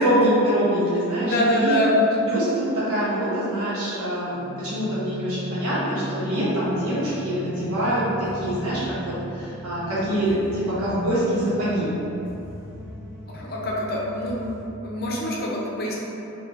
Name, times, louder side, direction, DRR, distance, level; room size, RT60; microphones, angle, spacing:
voice 1, 0.0-1.8 2.2-11.9, equal, 85° right, -9 dB, 1.3 m, -24 dB
voice 2, 1.2-1.9 13.3-14.4 14.8-15.9, equal, 45° left, -3 dB, 0.6 m, -25 dB
sound 1, 4.3-14.6, equal, 10° right, 0.7 m, -38 dB
4.7 x 2.7 x 2.8 m, 2.9 s
head